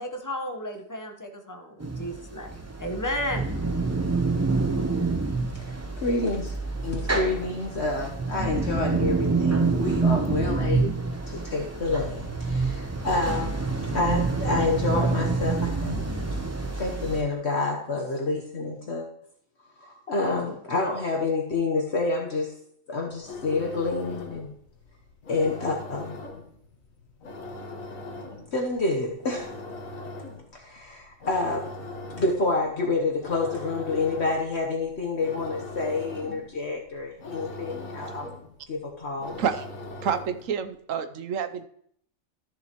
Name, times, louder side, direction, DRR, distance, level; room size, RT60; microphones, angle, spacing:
voice 1, 0.0-3.5, left 1 dB, 15° left, 4 dB, 0.9 m, -33 dB
sound 1, 1.8-17.2, right 3 dB, 15° right, 0.6 m, -27 dB
voice 2, 6.0-6.5 6.8-13.6 13.9-16.0 16.7-19.1 19.8-22.5 22.9-24.5 25.3-26.2 28.5-29.5 30.5-31.7 32.1-38.3 38.7-39.4, left 3 dB, 50° left, 0 dB, 1.3 m, -28 dB
sound 2, 23.1-40.6, left 2 dB, 70° left, 1.6 m, -41 dB
voice 3, 40.0-41.6, right 7 dB, 70° right, 10 dB, 1.1 m, -28 dB
13.5 x 6.7 x 3.0 m, 0.66 s
omnidirectional pair, 1.5 m